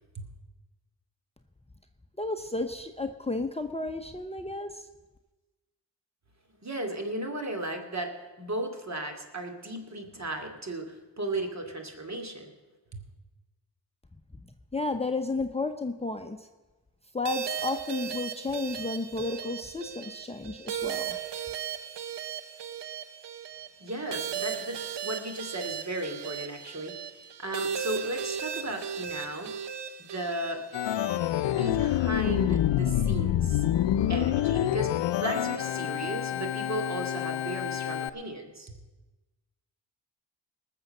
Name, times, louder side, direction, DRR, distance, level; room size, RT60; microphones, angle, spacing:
voice 1, 2.2-4.9 14.7-16.5 17.1-21.2, left 3 dB, 15° left, 6 dB, 0.9 m, -32 dB
voice 2, 6.6-12.5 12.9-13.0 23.8-29.5 30.0-30.6 31.4-33.6 34.1-38.8, right 1 dB, 40° right, 4 dB, 2.6 m, -35 dB
sound 1, 17.2-31.7, right 8 dB, 65° right, 1.0 m, -36 dB
Organ, 30.7-38.1, left 11 dB, 75° left, 0.6 m, -27 dB
19.5 x 7.0 x 6.7 m, 1.2 s
cardioid pair, 55°, 44 cm